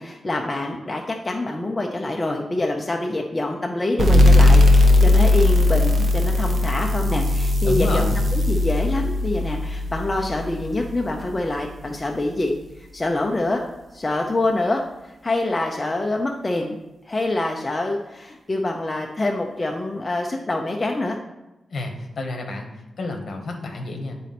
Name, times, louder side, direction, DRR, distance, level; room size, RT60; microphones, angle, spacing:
voice 1, 0.0-13.6 13.9-16.8 17.0-21.2, left 2 dB, 20° left, 1 dB, 0.4 m, -25 dB
sound 1, 4.0-11.3, left 2 dB, 45° right, 0.8 m, -18 dB
voice 2, 7.6-8.1 21.7-24.1, left 2 dB, 55° left, 3 dB, 1.1 m, -29 dB
9.0 x 4.1 x 4.2 m, 0.97 s
wide cardioid pair, 170°, 0 cm